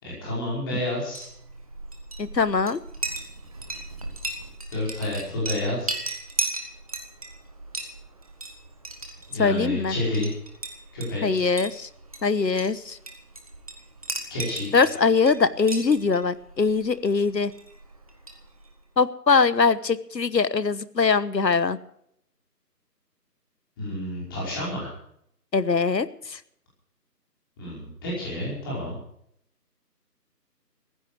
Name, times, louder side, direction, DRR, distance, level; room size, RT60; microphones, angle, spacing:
voice 1, 0.0-1.2 4.7-6.0 9.3-10.3 10.9-11.4 14.3-14.7 23.8-24.9 27.6-29.0, left 1 dB, 15° left, -6 dB, 5.1 m, -29 dB
Chink clink, 1.0-18.8, right 2 dB, 20° right, 1.5 m, -37 dB
voice 2, 2.2-2.8 9.4-9.9 11.2-11.9 12.2-13.0 14.7-17.5 19.0-21.8 25.5-26.4, left 4 dB, 85° left, 16 dB, 1.2 m, -22 dB
15.5 x 12.5 x 6.3 m, 0.70 s
figure-of-eight pair, 165°, 49 cm